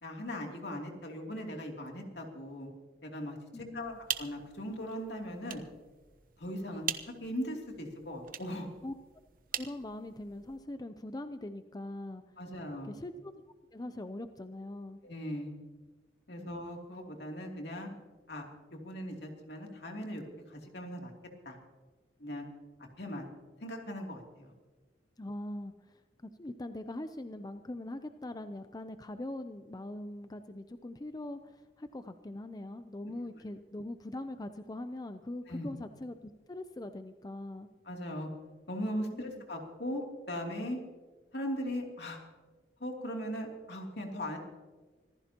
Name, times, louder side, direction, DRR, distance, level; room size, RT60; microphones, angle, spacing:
voice 1, 0.0-2.7 3.0-5.6 6.4-8.7 12.4-12.9 15.0-15.6 16.3-17.9 18.3-20.2 20.5-21.1 21.4-21.6 22.2-22.4 23.0-23.3 23.6-24.5 35.5-35.7 37.9-38.3 38.7-40.8 41.3-42.2 42.8-44.4, equal, 70° left, 1 dB, 2.9 m, -39 dB
voice 2, 3.5-4.0 8.8-8.9 9.5-12.2 12.8-13.3 13.7-15.0 16.4-16.6 25.2-36.2 36.5-37.7 39.1-39.4, left 1 dB, 20° left, 9 dB, 0.5 m, -42 dB
sound 1, 3.8-10.6, right 9 dB, 50° right, 0.9 m, -43 dB
25.5 x 15.5 x 2.9 m, 1.3 s
head